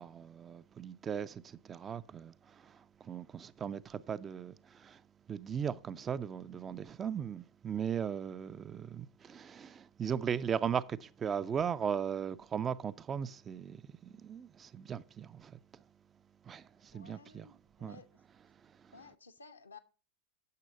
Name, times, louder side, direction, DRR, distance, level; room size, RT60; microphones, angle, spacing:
voice 1, 0.0-5.0 5.3-15.6 16.5-18.0, right 7 dB, 20° right, 0.4 m, -38 dB
voice 2, 16.9-18.1 18.9-19.8, left 4 dB, 75° left, 0.8 m, -55 dB
9.5 x 6.7 x 5.0 m
figure-of-eight pair, 90°, 0 cm